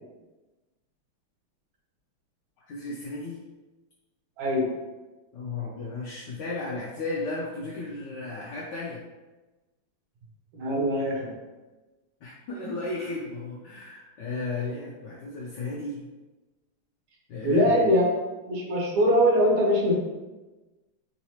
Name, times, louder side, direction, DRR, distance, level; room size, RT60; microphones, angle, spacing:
voice 1, 2.7-3.4 5.3-9.0 12.2-16.1 17.3-18.0, left 3 dB, 75° left, -3 dB, 1.0 m, -34 dB
voice 2, 4.4-4.7 10.5-11.3 17.4-18.1 18.5-19.9, equal, 70° right, -2 dB, 1.6 m, -22 dB
3.8 x 3.0 x 2.7 m, 1.2 s
omnidirectional pair, 2.3 m